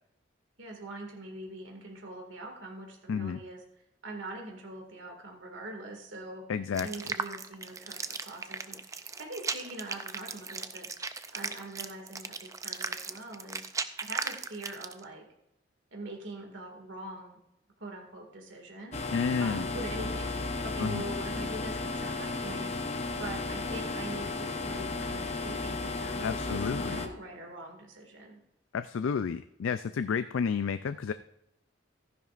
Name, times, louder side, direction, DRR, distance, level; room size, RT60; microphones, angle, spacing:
voice 1, 0.6-3.6 4.0-6.4 6.8-10.9 11.3-13.7 14.0-15.2 15.9-17.4 17.8-19.0 19.4-22.7 23.1-28.4, right 2 dB, 75° right, 1 dB, 2.1 m, -43 dB
voice 2, 3.1-3.4 6.5-6.9 19.1-19.7 20.8-21.0 26.2-27.1 28.7-31.1, left 6 dB, 85° left, 12 dB, 0.4 m, -31 dB
sound 1, 6.7-15.0, right 4 dB, 15° right, 0.4 m, -37 dB
sound 2, 18.9-27.1, left 3 dB, 35° left, 0.8 m, -34 dB
14.5 x 10.5 x 2.5 m, 0.81 s
head